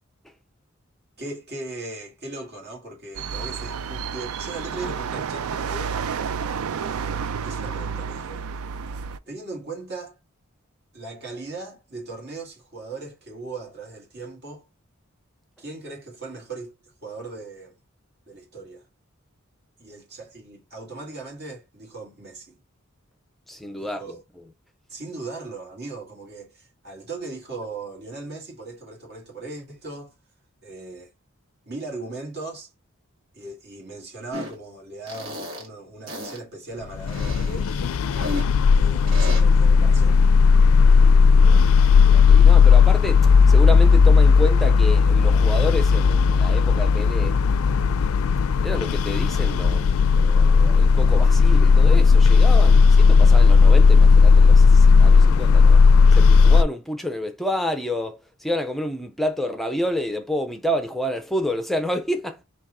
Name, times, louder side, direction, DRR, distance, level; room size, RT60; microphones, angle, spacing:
voice 1, 1.2-6.0 6.8-7.1 7.4-8.5 9.3-10.1 10.9-14.7 15.6-16.7 17.0-17.8 18.3-18.9 19.8-22.6 23.8-24.2 24.9-30.1 30.6-31.1 31.7-32.7 33.3-37.7 38.7-40.2, right 3 dB, 50° right, 2.1 m, -38 dB
sound 1, 3.1-9.2, right 6 dB, 90° right, 0.4 m, -30 dB
voice 2, 23.5-24.2 41.4-41.6 42.0-47.4 48.6-55.8 56.1-62.4, left 1 dB, ahead, 0.5 m, -29 dB
sound 2, 34.3-34.5 35.1-35.7 36.1-36.4 37.1-38.5 39.1-39.4, left 1 dB, 65° right, 1.9 m, -33 dB
sound 3, 37.0-56.6, left 5 dB, 80° left, 0.4 m, -15 dB
4.4 x 2.9 x 3.6 m
head